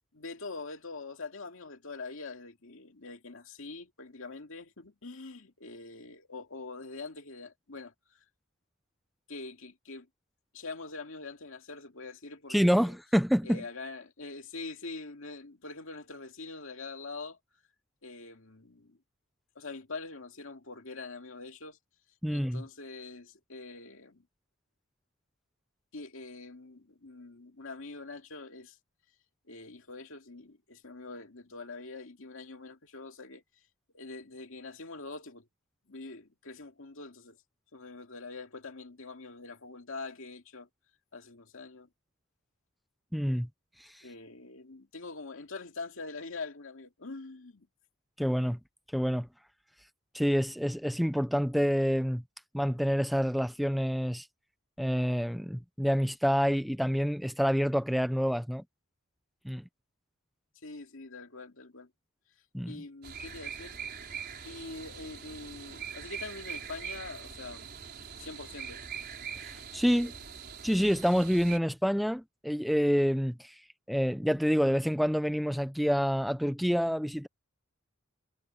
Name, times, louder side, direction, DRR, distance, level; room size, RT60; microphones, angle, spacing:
voice 1, 0.1-7.9 9.3-10.1 10.5-12.9 13.4-17.4 18.0-19.0 19.6-21.8 22.3-24.2 25.9-28.8 29.5-33.4 33.9-35.4 35.9-37.4 37.7-40.7 41.1-41.9 44.0-47.7 60.6-61.9 62.7-63.8 64.4-67.7 68.2-68.9 69.9-70.2, left 3 dB, 65° left, 2.4 m, -44 dB
voice 2, 12.5-13.6 22.2-22.6 43.1-43.5 43.8-43.9 48.2-48.6 48.9-49.3 50.1-52.2 52.5-54.3 54.8-58.6 59.4-59.6 62.5-62.8 69.4-70.1 70.6-73.5 73.9-77.3, equal, ahead, 0.5 m, -27 dB
sound 1, 63.0-71.6, right 7 dB, 50° right, 4.7 m, -42 dB
head